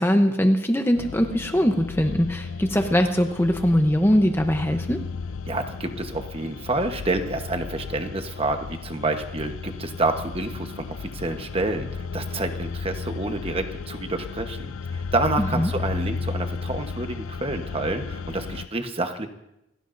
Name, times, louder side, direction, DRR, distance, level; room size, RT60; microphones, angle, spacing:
voice 1, 0.0-5.0 15.4-15.7, equal, 10° left, 5 dB, 0.8 m, -21 dB
sound 1, 0.9-18.7, left 5 dB, 80° left, 0.5 m, -34 dB
voice 2, 5.5-14.6 14.9-19.3, right 2 dB, 25° right, 6 dB, 1.1 m, -28 dB
29.0 x 16.0 x 2.6 m, 0.87 s
head